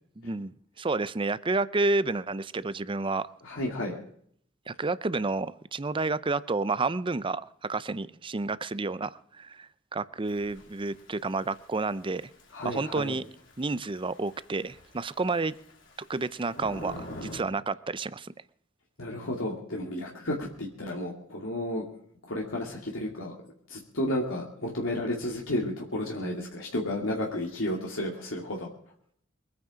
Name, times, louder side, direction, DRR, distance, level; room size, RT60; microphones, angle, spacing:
voice 1, 0.2-3.3 4.7-12.3 12.6-13.2 13.6-15.5 16.1-18.3, right 3 dB, 25° right, 0.6 m, -30 dB
voice 2, 3.4-4.0 12.5-13.2 19.0-21.8 22.3-23.3 23.7-28.7, left 1 dB, 85° left, 2.6 m, -32 dB
Thunder / Rain, 10.2-17.4, equal, 65° left, 3.7 m, -47 dB
23.5 x 9.6 x 5.0 m
head